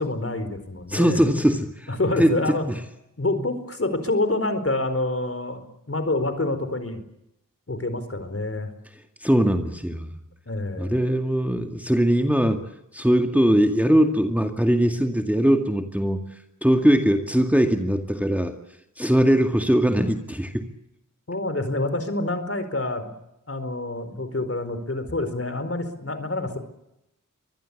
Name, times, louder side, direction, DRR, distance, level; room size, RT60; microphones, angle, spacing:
voice 1, 0.0-1.3 1.9-2.6 3.2-7.0 7.7-8.7 10.5-11.0 21.3-23.1 23.5-26.6, left 2 dB, 45° left, 9 dB, 4.6 m, -27 dB
voice 2, 0.9-2.3 2.7-2.8 9.2-10.1 10.8-12.7 12.9-16.2 16.6-18.5 19.0-20.7, equal, 5° right, 5 dB, 2.2 m, -21 dB
24.0 x 20.5 x 8.5 m, 0.84 s
cardioid pair, 45°, 32 cm